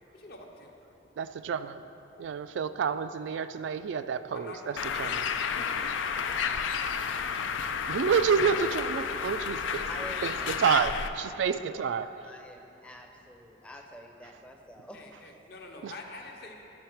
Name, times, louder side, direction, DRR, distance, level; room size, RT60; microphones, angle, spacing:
voice 1, 0.1-0.7 4.3-5.7 6.3-6.5 8.3-9.4 14.9-16.5, left 2 dB, 55° left, 1 dB, 0.9 m, -46 dB
voice 2, 1.2-1.8 2.2-5.3 7.9-9.9 10.2-12.2 15.8-15.9, right 6 dB, 75° right, 12 dB, 0.3 m, -29 dB
Bird, 4.8-11.1, left 6 dB, 85° left, 0.4 m, -31 dB
voice 3, 9.9-10.5 10.9-11.0 11.2-11.4 11.7-15.2, equal, 5° left, 2 dB, 0.6 m, -47 dB
10.5 x 5.6 x 4.5 m, 3.0 s
head